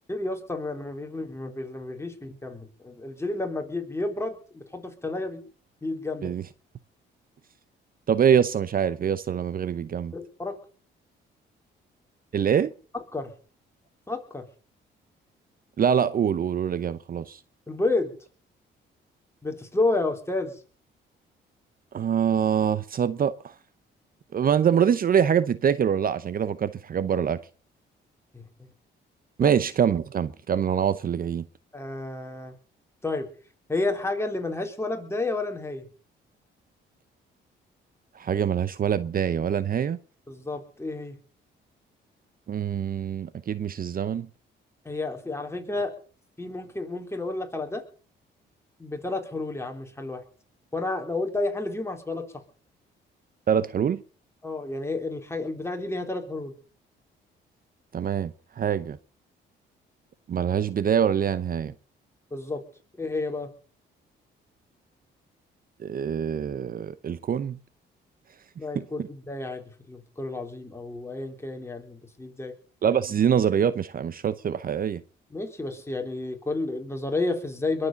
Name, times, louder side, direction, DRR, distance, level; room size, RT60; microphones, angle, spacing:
voice 1, 0.1-5.4 5.8-6.3 10.1-10.5 13.1-13.3 14.1-14.4 17.7-18.1 19.4-20.6 28.3-28.4 29.4-29.6 31.7-32.5 33.0-33.3 33.7-35.8 40.3-41.2 44.8-45.9 46.4-47.8 48.8-50.2 50.7-52.2 54.4-56.5 62.3-62.6 63.0-63.5 68.6-72.5 75.3-77.9, left 2 dB, 15° left, 3.9 m, -31 dB
voice 2, 8.1-10.1 12.3-12.7 15.8-17.4 21.9-23.5 24.3-27.4 29.4-31.5 38.1-40.0 42.5-44.3 53.5-54.0 57.9-59.0 60.3-61.7 65.8-67.6 68.7-68.8 72.8-75.0, right 8 dB, 45° right, 0.8 m, -24 dB
22.0 x 7.8 x 7.0 m
cardioid pair, 90°, 20 cm